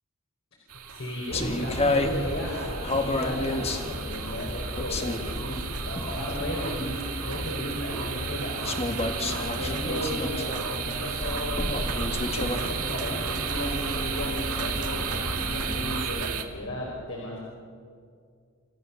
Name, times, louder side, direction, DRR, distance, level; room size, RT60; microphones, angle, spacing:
sound 1, 0.7-16.4, right 7 dB, 85° right, 1.9 m, -34 dB
voice 1, 0.9-8.7 9.3-17.4, left 1 dB, 60° left, -3 dB, 4.8 m, -35 dB
sound 2, 1.3-16.1, left 1 dB, 25° left, 1.6 m, -31 dB
27.5 x 15.0 x 7.1 m, 2.2 s
head